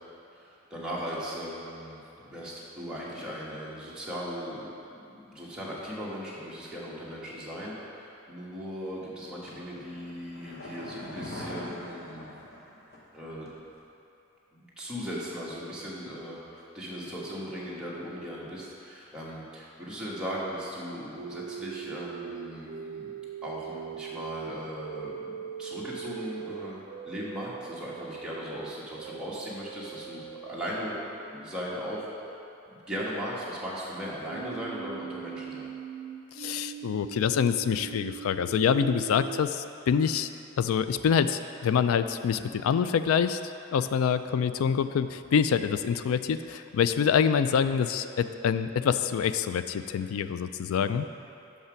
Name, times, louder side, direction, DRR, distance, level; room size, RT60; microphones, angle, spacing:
voice 1, 0.3-12.3 13.1-13.5 14.5-23.1 23.4-31.0 31.3-32.4 32.7-35.7, equal, 5° right, -7 dB, 1.3 m, -38 dB
sound 1, 9.5-13.2 13.5-13.6, left 1 dB, 50° left, 1.0 m, -42 dB
sound 2, 21.2-30.9 34.2-39.4, right 8 dB, 60° right, 0.4 m, -41 dB
voice 2, 36.4-40.3 40.6-43.4 43.7-51.1, left 7 dB, 85° left, 11 dB, 0.3 m, -26 dB
6.0 x 5.6 x 5.8 m, 2.8 s
head